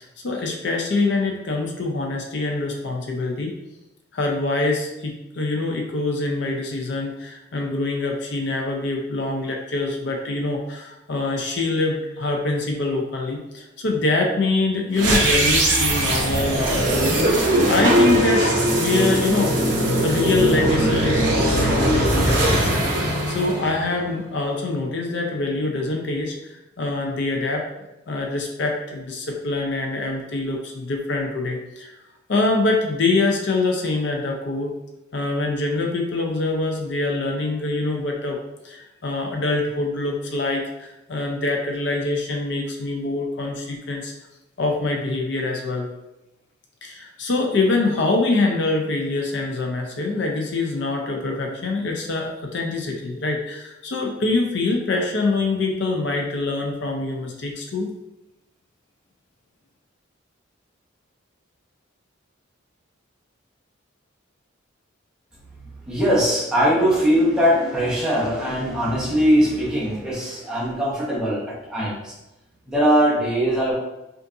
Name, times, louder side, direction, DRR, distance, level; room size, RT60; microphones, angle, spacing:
voice 1, 0.2-3.6 4.1-27.6 28.1-31.9 32.3-34.7 35.1-38.4 38.6-44.1 44.6-45.9 46.8-57.9, left 2 dB, 55° left, 1 dB, 0.5 m, -24 dB
sound 1, 14.9-24.2, right 1 dB, 60° right, 1.0 m, -20 dB
voice 2, 65.9-72.1 72.7-73.7, equal, 5° right, -6 dB, 0.9 m, -20 dB
5.2 x 2.5 x 2.6 m, 0.94 s
head